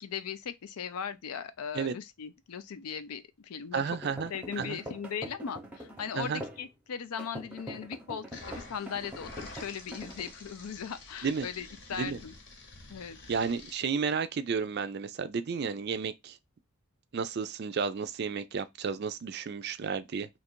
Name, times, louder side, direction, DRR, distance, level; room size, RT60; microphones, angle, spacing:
voice 1, 0.0-4.0 4.3-12.3 12.9-13.2, left 7 dB, 85° left, 0.5 m, -38 dB
voice 2, 3.7-4.3 4.6-4.8 6.2-6.4 11.2-11.5 11.9-12.2 13.3-16.4 17.1-20.3, right 5 dB, 50° right, 0.3 m, -32 dB
sound 1, 3.9-6.7 7.2-10.3, right 1 dB, 5° right, 0.7 m, -44 dB
sound 2, 8.3-13.7, left 2 dB, 55° left, 0.9 m, -48 dB
2.9 x 2.5 x 4.3 m
head